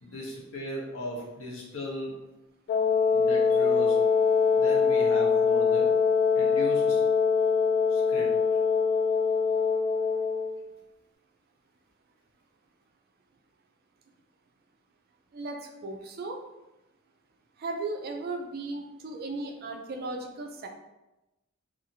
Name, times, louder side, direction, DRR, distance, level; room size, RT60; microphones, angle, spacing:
voice 1, 0.0-2.2 3.1-4.0 4.5-5.9 6.3-7.0 7.9-8.3, equal, 85° left, -2 dB, 0.8 m, -37 dB
Wind instrument woodwind instrument, 2.7-10.5, left 5 dB, 55° left, 0.3 m, -23 dB
voice 2, 15.3-16.4 17.6-20.7, right 2 dB, 50° right, 4 dB, 0.4 m, -36 dB
2.9 x 2.3 x 2.6 m, 0.99 s
head